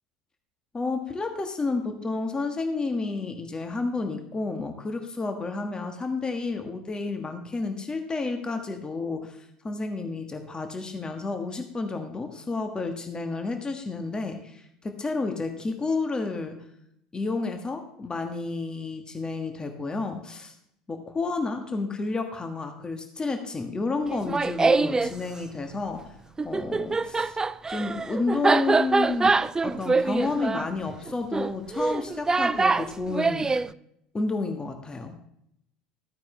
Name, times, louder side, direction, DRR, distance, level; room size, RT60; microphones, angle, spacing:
voice 1, 0.7-16.6 17.1-20.5 20.9-26.1 26.4-27.4 27.7-29.3 29.6-33.5 34.1-35.2, left 3 dB, 20° left, 6 dB, 1.6 m, -31 dB
Laughter, 24.1-25.1 26.4-33.7, right 3 dB, 15° right, 0.4 m, -24 dB
14.0 x 9.2 x 3.4 m, 0.74 s
hypercardioid pair, 70°, 4 cm